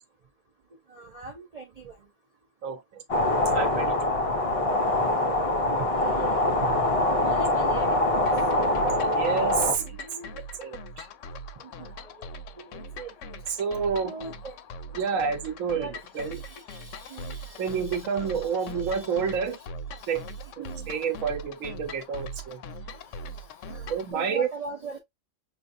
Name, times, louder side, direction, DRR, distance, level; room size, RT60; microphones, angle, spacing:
voice 1, 0.9-1.9 4.7-4.8 5.6-6.9 7.2-8.0 9.6-10.3 11.6-12.3 12.6-13.1 14.0-14.6 15.7-19.2 19.5-19.7 20.0-20.9 23.7-25.0, right 4 dB, 45° right, 0.5 m, -42 dB
voice 2, 2.6-3.0 3.5-4.1 9.1-9.8 10.6-11.1 13.5-14.1 15.0-15.9 16.1-16.4 17.6-19.6 20.1-20.2 20.9-22.6 23.9-24.5, right 6 dB, 75° right, 1.1 m, -29 dB
sound 1, 3.1-9.7, left 1 dB, 50° left, 0.4 m, -24 dB
sound 2, 8.3-24.1, equal, 70° left, 0.9 m, -41 dB
5.8 x 2.3 x 2.5 m
omnidirectional pair, 1.4 m